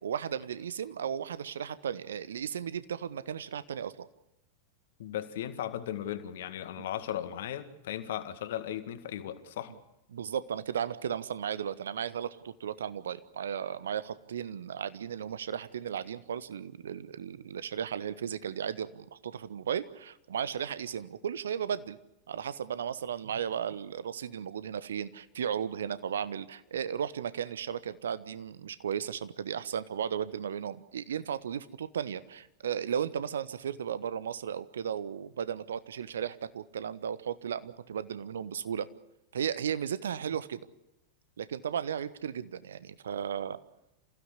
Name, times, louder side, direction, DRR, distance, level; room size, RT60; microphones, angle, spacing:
voice 1, 0.0-4.1 10.1-22.0 22.3-38.9 39.3-40.6 41.4-43.6, right 8 dB, 65° right, 15 dB, 1.1 m, -35 dB
voice 2, 5.0-9.7, left 11 dB, 55° left, 10 dB, 2.0 m, -36 dB
27.5 x 16.0 x 8.3 m, 0.89 s
figure-of-eight pair, 90°, 0 cm